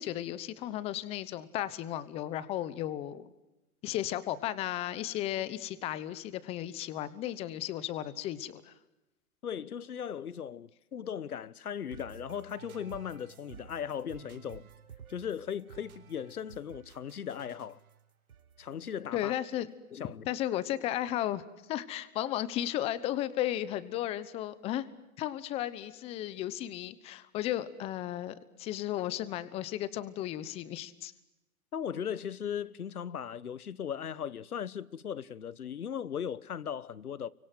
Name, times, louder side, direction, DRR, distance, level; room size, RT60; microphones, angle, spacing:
voice 1, 0.0-3.3 3.8-8.7 19.1-19.7 20.2-21.4 21.7-24.9 25.2-31.1, left 13 dB, 15° left, 1.0 m, -34 dB
voice 2, 9.4-14.7 15.1-17.8 18.6-19.3 19.9-20.2 31.7-37.3, left 8 dB, 90° left, 1.3 m, -38 dB
sound 1, 11.9-19.7, right 8 dB, 75° right, 4.2 m, -53 dB
29.5 x 25.0 x 7.8 m
hypercardioid pair, 150°, 43 cm